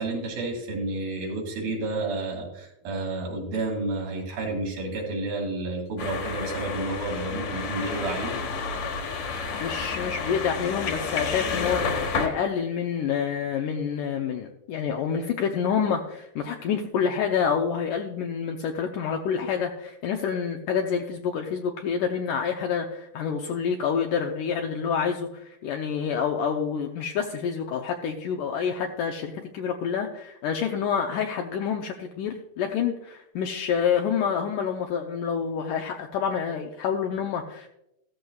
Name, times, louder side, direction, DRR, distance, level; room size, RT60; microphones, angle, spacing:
voice 1, 0.0-8.4, right 2 dB, 70° right, -1 dB, 4.2 m, -30 dB
sound 1, 6.0-12.3, left 5 dB, 55° left, 2.1 m, -30 dB
voice 2, 9.6-37.7, left 7 dB, 75° left, 2 dB, 1.9 m, -28 dB
14.5 x 14.0 x 2.3 m, 0.83 s
omnidirectional pair, 4.4 m